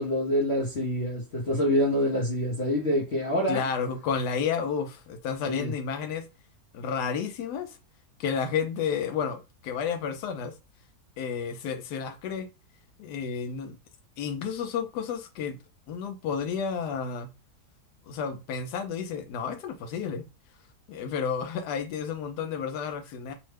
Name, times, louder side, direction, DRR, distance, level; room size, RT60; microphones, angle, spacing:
voice 1, 0.0-3.6 5.5-5.7, equal, 55° left, 0.8 m, -26 dB
voice 2, 3.5-6.2 6.7-7.7 8.2-10.5 11.2-12.5 13.0-13.8 14.2-15.6 15.9-17.3 18.1-20.3 20.9-23.3, left 6 dB, 80° left, 1.1 m, -31 dB
3.0 x 2.1 x 3.2 m
omnidirectional pair, 1.7 m